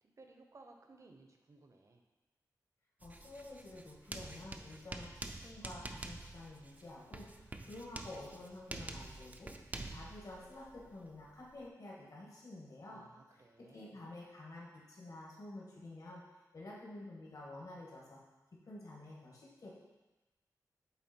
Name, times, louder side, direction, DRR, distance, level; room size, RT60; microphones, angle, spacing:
voice 1, 0.0-2.0 12.9-14.0, right 3 dB, 50° right, 4 dB, 0.8 m, -60 dB
voice 2, 3.0-5.1 5.4-9.5 9.9-13.0 13.6-16.2 16.5-18.2 18.7-19.7, left 2 dB, 65° left, -4 dB, 1.7 m, -50 dB
Writing, 3.0-11.7, right 2 dB, 25° right, 0.5 m, -48 dB
8.1 x 3.6 x 4.4 m, 1.1 s
wide cardioid pair, 100°, 7 cm